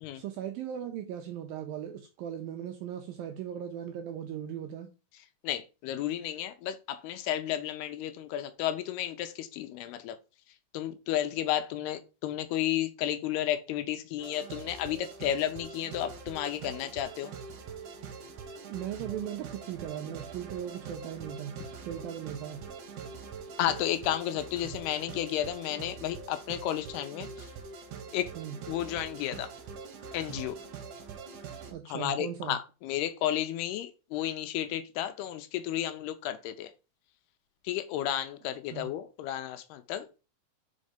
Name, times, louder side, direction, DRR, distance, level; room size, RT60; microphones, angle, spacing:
voice 1, 0.1-4.9 18.6-21.5 21.8-22.6 28.4-28.6 31.7-32.6 38.7-38.9, right 10 dB, 80° right, 2.1 m, -38 dB
voice 2, 5.4-10.2 10.7-17.3 23.6-27.3 28.1-28.3 28.7-29.5 30.1-30.6 31.9-36.7 37.7-40.1, left 11 dB, 80° left, 2.5 m, -32 dB
sound 1, 14.2-31.7, right 5 dB, 65° right, 2.2 m, -44 dB
5.3 x 5.1 x 5.0 m
omnidirectional pair, 4.8 m